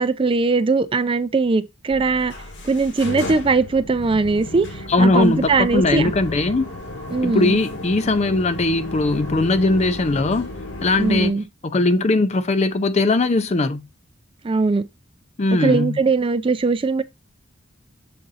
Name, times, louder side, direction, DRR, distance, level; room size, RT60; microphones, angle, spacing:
voice 1, 0.0-2.3 2.6-6.1 7.1-7.6 11.0-11.4 14.4-14.9 15.6-17.0, right 4 dB, 25° right, 0.4 m, -20 dB
sound 1, 1.9-11.3, left 1 dB, 60° left, 1.5 m, -34 dB
voice 2, 4.9-6.7 7.2-10.5 10.8-11.4 11.6-13.9 15.4-16.0, left 2 dB, 35° left, 0.5 m, -19 dB
6.9 x 3.9 x 4.0 m
head